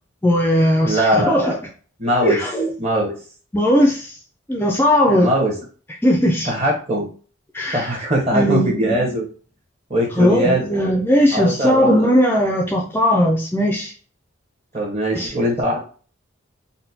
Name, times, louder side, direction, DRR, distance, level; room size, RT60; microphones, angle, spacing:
voice 1, 0.2-1.6 2.2-2.7 3.5-4.1 4.5-5.3 6.0-6.5 7.5-7.9 8.3-8.9 10.2-13.9 15.1-15.3, equal, 10° left, 0 dB, 0.4 m, -18 dB
voice 2, 0.8-1.6 2.0-2.4 2.8-3.1 5.1-5.5 6.4-7.1 7.7-9.3 9.9-10.6 11.3-12.1 14.7-15.8, equal, 30° right, -2 dB, 1.1 m, -21 dB
4.0 x 2.1 x 2.7 m, 0.40 s
head